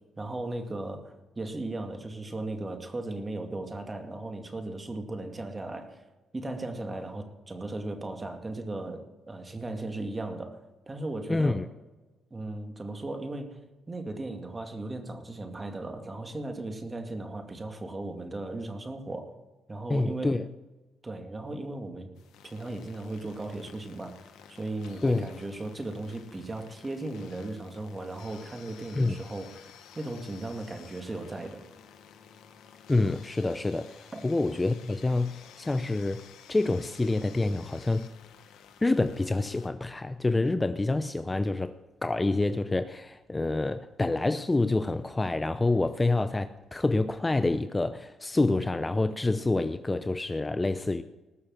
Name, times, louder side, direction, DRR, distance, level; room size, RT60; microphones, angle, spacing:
voice 1, 0.2-6.0 6.3-10.6 10.9-11.6 12.3-13.6 13.9-19.3 19.7-20.4 21.0-22.1 22.4-24.2 24.5-31.6 34.1-34.2, right 2 dB, 25° right, 2.3 m, -37 dB
voice 2, 11.3-11.6 19.9-20.5 25.0-25.2 28.9-29.2 32.9-38.1 38.8-41.7 42.0-51.0, left 2 dB, 20° left, 0.6 m, -27 dB
sound 1, 22.2-39.7, left 8 dB, 85° left, 1.5 m, -53 dB
sound 2, 29.8-36.2, left 5 dB, 70° left, 3.6 m, -59 dB
19.5 x 6.6 x 7.3 m
cardioid pair, 90°, 0 cm